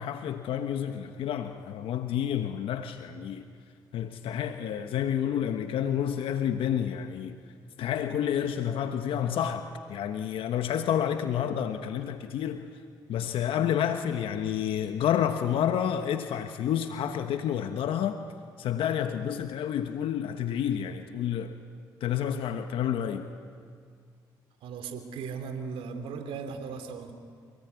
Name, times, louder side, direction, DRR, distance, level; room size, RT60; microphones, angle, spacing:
voice 1, 0.0-3.5 3.9-7.4 7.8-12.7 13.1-18.2 18.6-21.6 22.0-23.3, left 9 dB, 75° left, 8 dB, 1.2 m, -29 dB
voice 2, 24.6-27.1, right 5 dB, 80° right, 7 dB, 2.9 m, -37 dB
29.0 x 18.5 x 9.6 m, 2.2 s
supercardioid pair, 60°, 9 cm